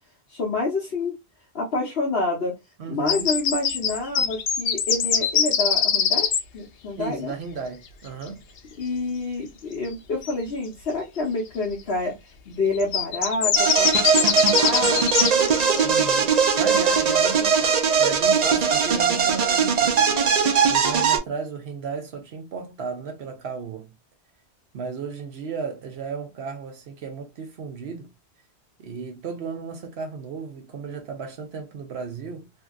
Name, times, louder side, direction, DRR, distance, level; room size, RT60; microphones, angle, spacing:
voice 1, 0.3-1.2 1.5-2.5 2.9-7.3 8.8-12.1 12.5-15.0, left 3 dB, 65° left, 1.1 m, -28 dB
voice 2, 2.8-3.3 7.0-8.4 15.8-20.1 20.7-23.9 24.7-28.1 28.8-32.5, right 5 dB, 70° right, 0.9 m, -34 dB
sound 1, 3.1-6.4 10.2-10.3 12.7-15.8, left 7 dB, 90° left, 0.9 m, -22 dB
sound 2, 13.6-21.2, right 6 dB, 50° right, 0.5 m, -20 dB
2.7 x 2.7 x 2.3 m
omnidirectional pair, 1.1 m